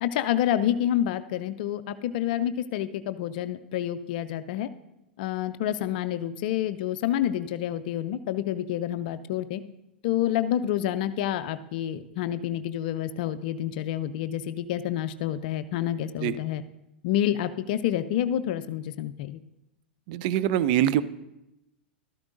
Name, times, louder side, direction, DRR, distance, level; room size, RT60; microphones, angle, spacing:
voice 1, 0.0-4.7 5.2-9.6 10.0-16.6 17.0-19.4, left 11 dB, 55° left, 12 dB, 0.4 m, -28 dB
voice 2, 20.1-21.0, right 11 dB, 50° right, 15 dB, 0.5 m, -23 dB
13.0 x 12.5 x 2.6 m, 0.90 s
figure-of-eight pair, 95°, 6 cm